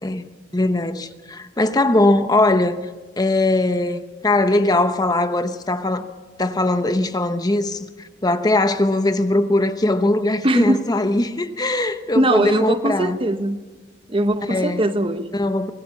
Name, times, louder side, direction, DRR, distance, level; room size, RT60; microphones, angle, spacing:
voice 1, 0.0-2.8 3.2-6.1 6.4-13.2 14.4-14.8 15.3-15.7, left 2 dB, 20° left, 0.9 m, -20 dB
voice 2, 10.4-10.8 12.1-13.6 14.1-15.3, right 1 dB, 30° right, 1.0 m, -20 dB
25.0 x 18.0 x 7.2 m
head